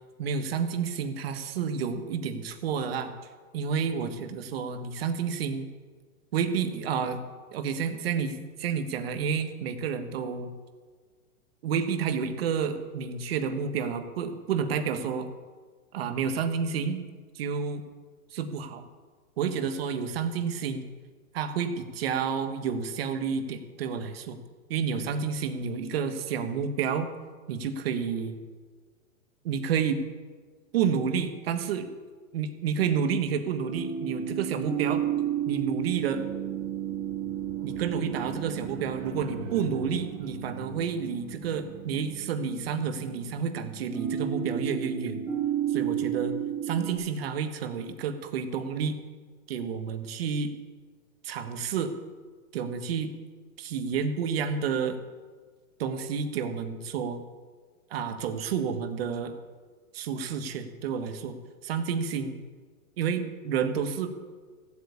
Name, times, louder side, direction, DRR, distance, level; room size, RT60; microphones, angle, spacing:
voice 1, 0.2-3.1 3.5-5.7 6.3-7.2 7.5-10.5 11.6-15.3 15.9-17.0 17.3-17.8 18.3-18.8 19.4-20.9 21.3-24.4 24.7-27.1 27.5-28.4 29.4-30.0 30.7-31.9 32.3-35.0 35.5-36.2 37.6-45.2 45.7-46.4 46.6-49.0 49.5-50.5 51.2-51.9 52.5-53.1 53.6-55.0 55.8-57.2 57.9-59.3 59.9-61.4 61.6-62.3 63.0-64.1, right 6 dB, 45° right, 7 dB, 1.5 m, -30 dB
sound 1, 33.7-46.9, right 10 dB, 5° right, 0.6 m, -33 dB
sound 2, 34.7-43.5, right 3 dB, 60° right, 2.3 m, -47 dB
15.0 x 8.3 x 8.3 m, 1.5 s
hypercardioid pair, 170°, 42 cm